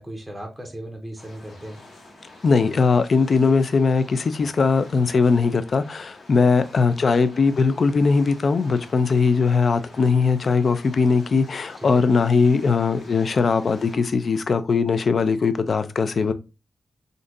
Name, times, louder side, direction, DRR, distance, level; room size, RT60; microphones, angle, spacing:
voice 1, 0.0-1.8 11.8-12.1, right 1 dB, 10° right, 0.6 m, -37 dB
sound 1, 1.2-14.0, left 2 dB, 85° left, 1.6 m, -47 dB
voice 2, 2.4-16.3, left 4 dB, 50° left, 0.3 m, -20 dB
3.7 x 2.6 x 2.4 m
wide cardioid pair, 125°, 0 cm